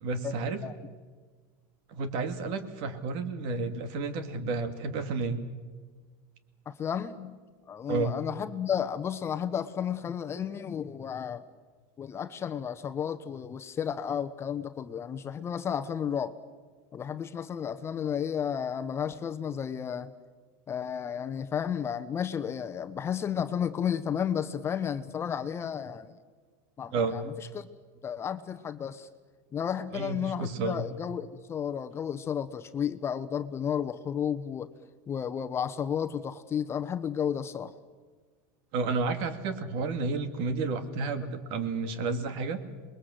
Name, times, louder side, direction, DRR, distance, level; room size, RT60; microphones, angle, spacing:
voice 1, 0.0-0.6 1.9-5.4 7.9-8.2 26.9-27.2 29.9-30.9 38.7-42.6, right 4 dB, 60° right, 9 dB, 2.6 m, -31 dB
voice 2, 6.7-7.3 7.7-11.4 12.0-16.4 16.9-20.1 20.7-26.1 26.8-27.7 28.0-29.1 29.5-34.7 35.1-37.7, left 8 dB, 25° left, 9 dB, 1.1 m, -32 dB
27.5 x 21.5 x 7.9 m, 1.4 s
supercardioid pair, 140°, 10 cm